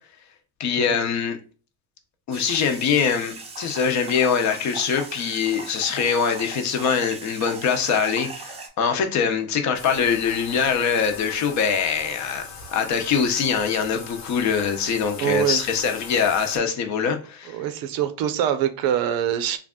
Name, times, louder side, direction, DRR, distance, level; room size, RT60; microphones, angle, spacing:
voice 1, 0.6-1.4 2.3-12.4 12.7-17.6, left 6 dB, 50° left, 0.7 m, -23 dB
sound 1, 2.3-8.7, right 4 dB, 15° right, 0.5 m, -38 dB
Bathtub (filling or washing), 9.7-16.6, left 5 dB, 90° left, 1.2 m, -40 dB
voice 2, 15.2-15.6 17.1-17.2 17.5-19.6, right 10 dB, 75° right, 0.6 m, -24 dB
3.2 x 2.4 x 3.6 m
cardioid pair, 140°, 36 cm